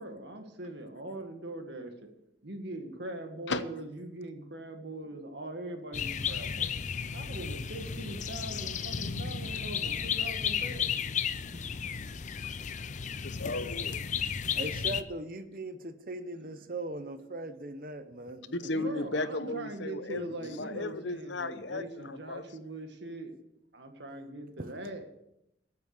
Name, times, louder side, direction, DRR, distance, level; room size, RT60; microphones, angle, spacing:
voice 1, 0.0-1.9 2.4-6.7 7.1-10.9 11.5-11.6 12.0-12.1 18.7-23.3 23.7-25.1, right 2 dB, 60° right, 2.0 m, -41 dB
sound 1, 5.9-15.0, left 7 dB, 40° left, 0.5 m, -34 dB
voice 2, 8.8-9.7 12.8-14.1 18.5-22.4, left 2 dB, 70° left, 0.9 m, -36 dB
voice 3, 9.7-10.0 11.3-11.6 11.9-12.0 14.5-19.7 20.1-20.8 24.6-24.9, right 2 dB, 45° right, 1.0 m, -41 dB
14.5 x 8.4 x 6.7 m
head